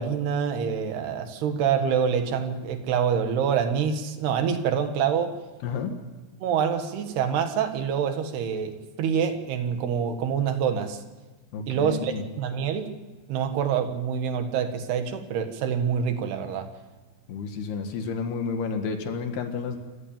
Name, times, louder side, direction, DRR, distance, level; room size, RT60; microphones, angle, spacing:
voice 1, 0.0-5.3 6.4-11.0 11.7-12.9 13.3-16.7, right 7 dB, 90° right, 7 dB, 3.7 m, -26 dB
voice 2, 11.5-12.2 17.3-19.8, left 5 dB, 80° left, 5 dB, 3.8 m, -31 dB
27.0 x 15.0 x 8.9 m, 1.2 s
omnidirectional pair, 4.5 m